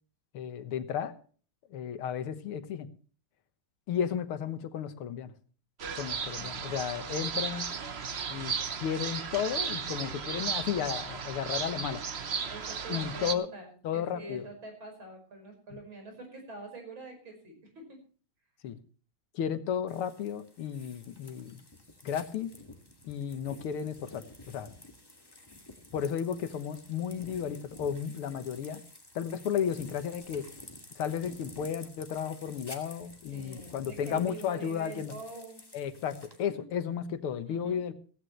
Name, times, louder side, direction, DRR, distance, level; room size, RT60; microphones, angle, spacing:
voice 1, 0.3-1.1 1.7-2.9 3.9-5.3 5.9-7.7 8.3-12.0 12.9-13.5 13.8-14.5 18.6-18.8 19.3-21.6 22.0-22.5 23.0-24.7 25.9-28.8 29.2-30.4 31.0-35.1 35.7-37.9, left 8 dB, 90° left, 11 dB, 2.1 m, -33 dB
sound 1, 5.8-13.3, right 6 dB, 45° right, 0.9 m, -35 dB
voice 2, 12.5-18.0 33.3-35.6 37.5-37.8, right 2 dB, 70° right, 4 dB, 6.1 m, -45 dB
sound 2, 19.9-36.4, left 1 dB, 10° left, 1.9 m, -51 dB
15.5 x 15.5 x 3.1 m, 0.41 s
omnidirectional pair, 2.3 m